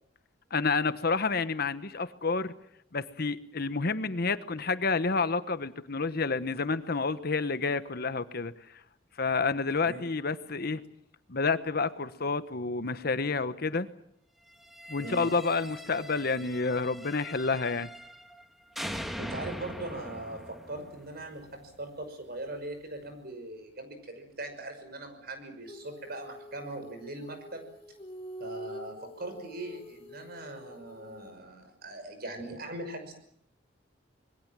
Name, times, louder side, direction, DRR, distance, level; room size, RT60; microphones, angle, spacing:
voice 1, 0.5-2.5 2.9-8.5 9.2-10.8 11.3-13.9 14.9-17.9, left 4 dB, 55° left, 13 dB, 1.1 m, -29 dB
sound 1, 14.6-18.4 18.8-21.8, equal, ahead, 1.6 m, -42 dB
voice 2, 19.2-27.6 28.4-33.1, right 2 dB, 55° right, 7 dB, 5.9 m, -40 dB
Female singing, 25.7-31.4, right 1 dB, 30° left, 2.8 m, -46 dB
25.5 x 22.0 x 7.5 m, 0.71 s
head